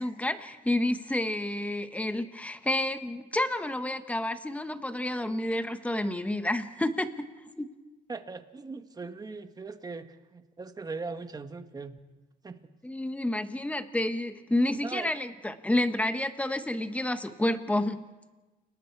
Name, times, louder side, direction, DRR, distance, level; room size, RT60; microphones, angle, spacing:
voice 1, 0.0-7.3 7.6-7.7 12.8-18.0, left 1 dB, 10° left, 9 dB, 1.3 m, -29 dB
voice 2, 8.1-12.0 12.4-12.6 14.8-15.1, right 4 dB, 25° right, 8 dB, 1.4 m, -39 dB
30.0 x 19.0 x 4.7 m, 1.2 s
cardioid pair, 110°, 17 cm